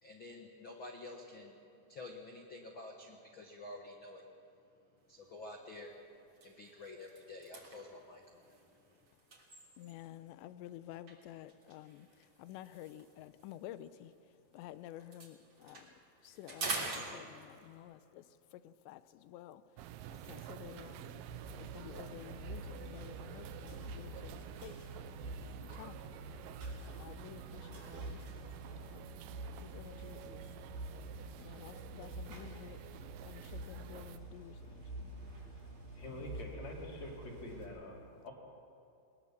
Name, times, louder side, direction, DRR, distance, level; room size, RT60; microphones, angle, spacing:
voice 1, 0.0-1.6 1.9-4.2 5.1-5.9 6.4-9.1, left 2 dB, 70° left, 1 dB, 1.1 m, -50 dB
sound 1, 5.1-5.3 5.8-5.9 6.3-10.2 11.1-14.6 14.9-17.8, right 3 dB, 35° right, 3.7 m, -46 dB
voice 2, 9.8-14.1 14.5-15.9 16.2-19.6 20.1-21.3 21.6-24.9 25.5-26.1 26.9-29.1 29.6-30.5 31.4-32.8 33.3-35.1 36.1-36.2, left 13 dB, 90° left, 13 dB, 3.0 m, -52 dB
sound 2, 19.8-34.2, right 11 dB, 90° right, 1.9 m, -50 dB
sound 3, 21.3-37.7, right 1 dB, 70° right, 8.6 m, -48 dB
voice 3, 35.9-38.3, left 1 dB, 40° left, -2 dB, 4.3 m, -46 dB
21.5 x 21.5 x 7.4 m, 2.6 s
omnidirectional pair, 5.0 m